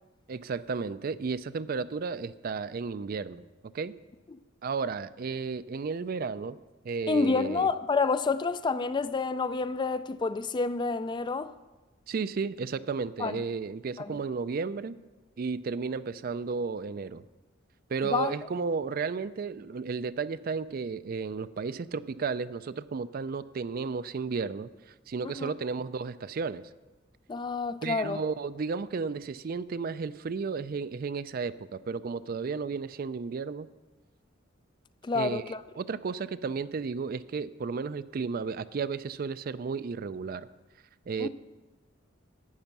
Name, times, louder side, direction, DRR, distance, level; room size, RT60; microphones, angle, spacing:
voice 1, 0.3-3.4 3.7-3.9 4.6-6.6 6.8-7.7 12.1-15.0 15.4-17.2 17.9-26.6 27.8-33.7 35.1-40.5 41.1-41.3, right 5 dB, 50° right, 0.4 m, -33 dB
voice 2, 7.1-11.5 13.2-13.4 14.0-14.1 18.1-18.3 25.2-25.5 27.3-28.2 35.0-35.6 41.2-41.3, left 4 dB, 25° left, 0.3 m, -28 dB
12.0 x 8.5 x 5.9 m
head